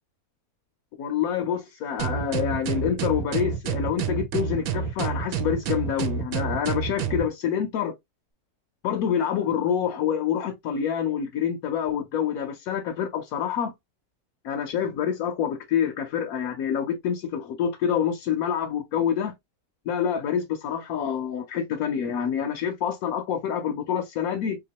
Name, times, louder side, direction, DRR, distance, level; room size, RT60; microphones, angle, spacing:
voice 1, 1.0-7.9 8.8-13.7 14.4-19.3 19.9-24.6, left 8 dB, 80° left, 1.1 m, -27 dB
sound 1, 2.0-7.3, right 7 dB, 75° right, 1.1 m, -28 dB
3.5 x 2.9 x 2.8 m
omnidirectional pair, 1.5 m